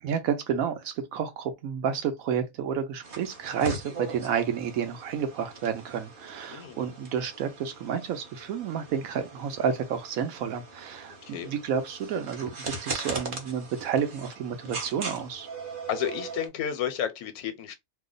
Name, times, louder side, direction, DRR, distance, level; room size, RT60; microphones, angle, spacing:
voice 1, 0.0-15.5, right 7 dB, 75° right, 1.0 m, -30 dB
sound 1, 3.0-16.5, right 3 dB, 45° right, 0.8 m, -40 dB
voice 2, 6.5-6.8 11.2-11.5 15.9-17.7, left 9 dB, 85° left, 1.1 m, -32 dB
2.9 x 2.1 x 3.8 m
omnidirectional pair, 1.5 m